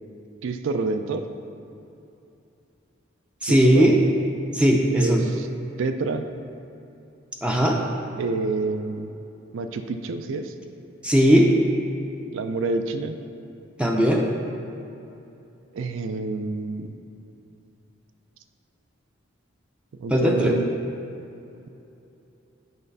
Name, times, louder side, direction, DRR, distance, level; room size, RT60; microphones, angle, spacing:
voice 1, 0.4-1.2 3.4-4.0 4.9-5.5 5.8-6.2 8.2-9.1 9.5-10.5 12.3-13.2 15.7-16.9 20.0-20.7, right 3 dB, 70° right, 8 dB, 0.4 m, -28 dB
voice 2, 3.4-4.0 4.6-5.2 7.4-7.8 11.0-11.5 13.8-14.2 20.1-20.5, equal, 5° right, 0 dB, 0.4 m, -18 dB
8.0 x 3.3 x 5.3 m, 2.8 s
head